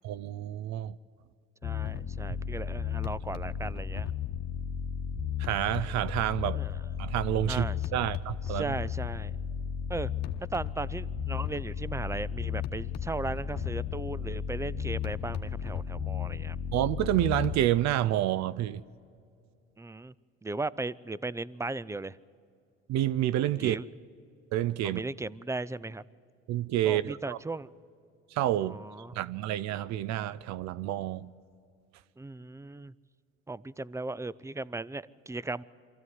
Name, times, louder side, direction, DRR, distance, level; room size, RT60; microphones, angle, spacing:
voice 1, 0.0-0.9 5.4-6.6 7.0-7.7 7.9-8.8 16.7-18.8 22.9-23.8 24.5-25.0 26.5-27.4 28.3-28.8 29.1-31.3, right 13 dB, 65° right, 0.6 m, -28 dB
sound 1, 1.6-17.7, left 8 dB, 60° left, 1.3 m, -34 dB
voice 2, 1.6-4.1 6.5-6.8 7.5-7.8 8.5-9.4 9.9-10.1 10.5-16.6 19.8-20.1 20.4-22.2 23.6-23.9 24.8-26.0 26.8-27.7 28.6-29.1 32.2-32.9 33.5-35.6, right 2 dB, 10° right, 0.5 m, -37 dB
23.5 x 14.0 x 9.5 m
supercardioid pair, 85°, 30 cm